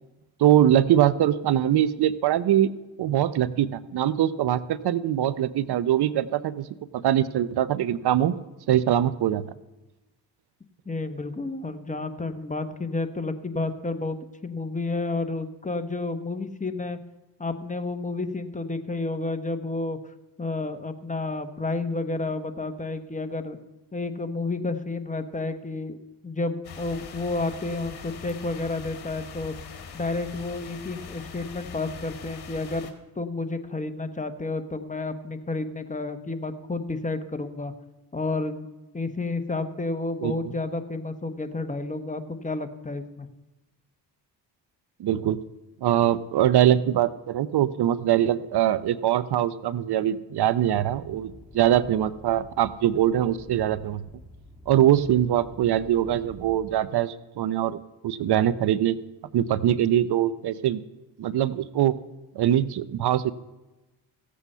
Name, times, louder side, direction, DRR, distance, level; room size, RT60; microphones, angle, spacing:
voice 1, 0.4-2.7 3.0-6.7 6.9-8.4 8.7-9.4 40.2-40.4 45.0-45.4 45.8-54.0 54.7-57.8 58.0-59.0 59.3-60.8 61.2-62.0 62.4-63.3, right 11 dB, 70° right, 16 dB, 0.7 m, -22 dB
voice 2, 10.9-14.2 14.4-17.0 17.4-20.0 20.4-23.6 23.9-26.0 26.2-29.5 29.9-32.9 33.2-37.7 38.1-38.7 38.9-43.3, left 3 dB, 20° left, 8 dB, 1.1 m, -30 dB
sound 1, 26.6-32.9, left 7 dB, 65° left, 1.8 m, -42 dB
sound 2, 50.6-56.8, left 1 dB, ahead, 1.5 m, -48 dB
15.5 x 8.3 x 5.5 m, 1.1 s
cardioid pair, 80°, 41 cm